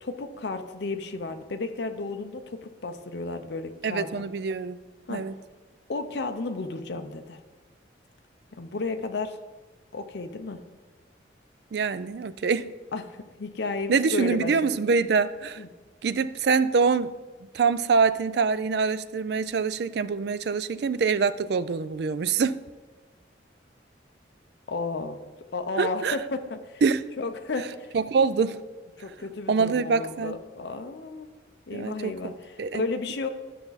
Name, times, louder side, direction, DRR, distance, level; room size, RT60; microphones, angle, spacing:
voice 1, 0.0-4.2 5.1-5.2 5.9-7.4 8.5-9.4 9.9-10.6 12.9-14.8 15.6-15.7 24.7-25.2 25.5-26.8 27.2-27.9 29.0-31.3 31.7-33.3, left 3 dB, 65° left, 6 dB, 0.6 m, -33 dB
voice 2, 3.8-4.8 5.1-5.3 11.7-12.7 13.9-15.6 16.0-17.1 17.5-22.6 25.8-26.2 26.8-27.1 27.9-28.6 29.5-30.4 31.7-32.8, right 5 dB, 60° right, 15 dB, 0.4 m, -25 dB
12.0 x 5.9 x 4.0 m, 1.3 s
head